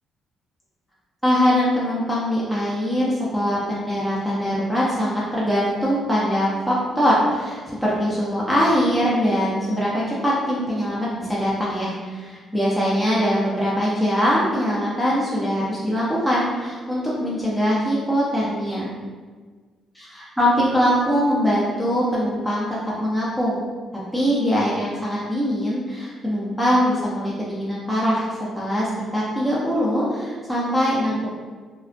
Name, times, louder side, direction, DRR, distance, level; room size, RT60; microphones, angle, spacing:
voice 1, 1.2-18.9 20.0-23.7 24.1-28.3 28.5-31.3, equal, 5° left, -7 dB, 0.5 m, -22 dB
2.4 x 2.1 x 2.4 m, 1.5 s
cardioid pair, 90°, 0 cm